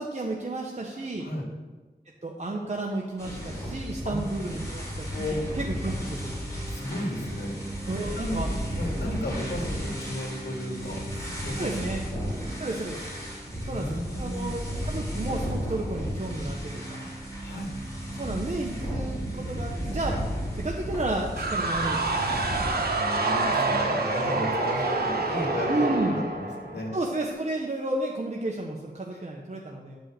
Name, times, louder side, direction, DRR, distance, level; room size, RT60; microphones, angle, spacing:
voice 1, 0.0-1.3 2.2-6.3 7.8-8.5 11.5-12.0 12.6-13.0 13.6-17.0 18.2-20.2 20.5-22.5 23.5-24.0 24.2-24.4 25.7-26.2 26.9-30.0, right 2 dB, 40° right, -1 dB, 1.0 m, -32 dB
sound 1, 3.2-22.9, equal, 20° left, 3.7 m, -34 dB
sound 2, 4.5-22.1, right 2 dB, 15° right, 0.8 m, -42 dB
voice 2, 6.7-7.6 8.1-8.4 8.7-11.9 13.5-14.5 17.0-17.1 17.4-17.7 22.5-26.9 29.1-29.2, left 1 dB, 80° left, -1 dB, 2.3 m, -34 dB
sound 3, 21.4-27.1, right 3 dB, 65° right, 1.5 m, -27 dB
10.0 x 5.4 x 7.6 m, 1.3 s
wide cardioid pair, 95°, 17 cm